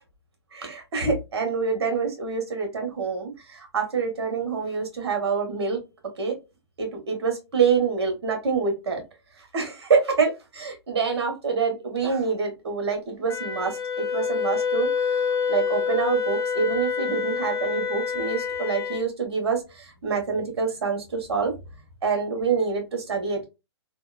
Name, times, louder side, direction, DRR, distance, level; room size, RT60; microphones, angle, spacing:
voice 1, 0.5-5.8 6.2-6.3 6.8-9.0 9.4-15.2 15.5-21.5 22.0-23.5, right 5 dB, 70° right, 3 dB, 1.3 m, -26 dB
Wind instrument woodwind instrument, 13.3-19.0, left 6 dB, 60° left, 1.0 m, -27 dB
2.8 x 2.3 x 2.3 m, 0.26 s
hypercardioid pair, 145°, 14 cm